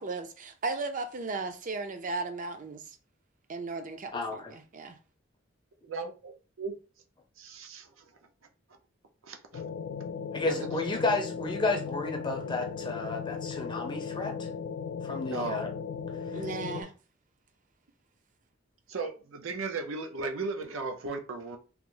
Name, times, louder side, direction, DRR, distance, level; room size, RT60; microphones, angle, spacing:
voice 1, 0.0-3.0 3.5-4.9 16.3-16.9, right 3 dB, 40° right, 0.5 m, -36 dB
voice 2, 4.1-4.6 10.3-14.5 15.0-15.7 16.3-16.4, left 3 dB, 25° left, 0.6 m, -32 dB
voice 3, 5.8-6.8 7.4-8.1 9.2-9.6 10.4-10.7 15.2-15.6 16.3-16.9 18.9-21.6, right 3 dB, 90° right, 0.6 m, -37 dB
sound 1, 9.5-16.8, left 6 dB, 70° left, 0.4 m, -37 dB
3.0 x 2.0 x 3.7 m
head